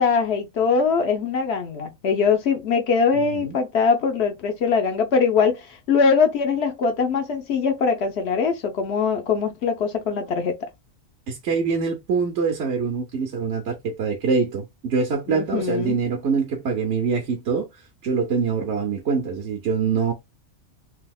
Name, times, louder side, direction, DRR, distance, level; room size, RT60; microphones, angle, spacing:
voice 1, 0.0-10.6 15.3-16.0, left 5 dB, 60° left, 0.9 m, -22 dB
voice 2, 11.3-17.7 18.0-20.1, right 5 dB, 65° right, 1.0 m, -24 dB
3.4 x 2.8 x 2.3 m
omnidirectional pair, 1.4 m